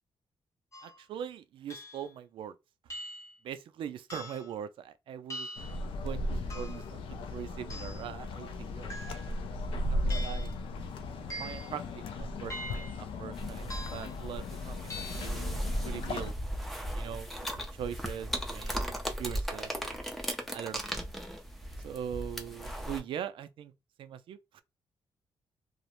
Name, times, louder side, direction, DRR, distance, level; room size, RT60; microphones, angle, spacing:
sound 1, 0.7-1.0 1.7-2.1 2.9-3.4 4.1-4.5 5.3-5.8 6.5-6.9 7.7-8.1 8.9-9.4 10.1-10.5 11.3-11.7 12.5-13.0 13.7-14.2 14.9-15.3, equal, 35° left, 0.8 m, -43 dB
voice 1, 0.8-2.6 3.4-5.5 6.0-9.2 9.7-10.5 11.4-13.7 13.9-16.3 16.9-20.0 20.5-21.1 21.8-23.7 24.0-24.6, right 9 dB, 70° right, 0.4 m, -42 dB
sound 2, 5.6-16.3, left 1 dB, 80° left, 0.4 m, -36 dB
sound 3, 13.3-23.0, equal, ahead, 0.5 m, -37 dB
2.4 x 2.0 x 2.9 m
cardioid pair, 120°, 9 cm